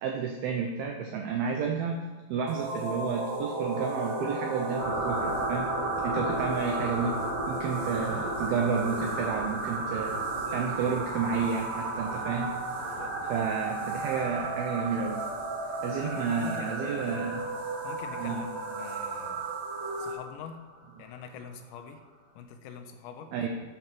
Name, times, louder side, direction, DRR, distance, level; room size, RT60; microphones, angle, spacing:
voice 1, 0.0-2.0 2.3-5.7 6.0-10.2 10.5-12.5 13.3-15.2 15.8-17.5 18.2-18.5 23.3-23.5, right 6 dB, 90° right, 3 dB, 2.1 m, -31 dB
sound 1, 2.5-20.1, right 3 dB, 70° right, 2.5 m, -35 dB
sound 2, 4.8-21.0, right 1 dB, 35° right, 1.0 m, -37 dB
voice 2, 12.8-13.3 15.6-17.5 17.8-19.5 20.0-20.6 21.0-22.0 22.4-23.3, left 7 dB, 80° left, 6 dB, 2.9 m, -45 dB
9.1 x 5.4 x 5.9 m, 1.2 s
omnidirectional pair, 5.2 m